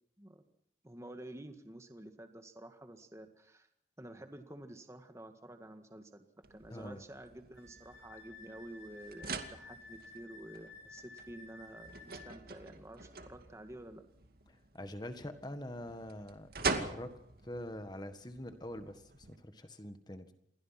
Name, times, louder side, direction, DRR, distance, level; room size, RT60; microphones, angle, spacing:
voice 1, 0.8-3.7 4.0-14.0, right 1 dB, 15° right, 7 dB, 1.8 m, -50 dB
sound 1, 6.4-19.4, right 4 dB, 55° right, 2.4 m, -44 dB
voice 2, 6.7-7.0 14.7-16.5 16.8-17.1 17.4-20.3, left 1 dB, 25° left, 8 dB, 1.7 m, -44 dB
Wind instrument woodwind instrument, 7.6-12.3, left 3 dB, 80° left, 3.8 m, -54 dB
28.5 x 22.5 x 6.0 m, 0.73 s
head